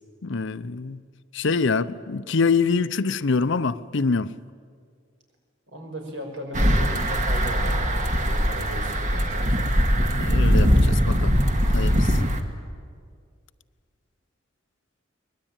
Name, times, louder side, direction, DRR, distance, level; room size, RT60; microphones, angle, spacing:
voice 1, 0.2-1.0 1.3-4.3 10.2-11.3 11.7-12.2, left 4 dB, 65° left, 0.7 m, -25 dB
voice 2, 5.7-9.8, equal, 65° right, 6.0 m, -37 dB
sound 1, 6.5-12.4, equal, 40° right, 1.9 m, -21 dB
23.5 x 21.5 x 9.0 m
head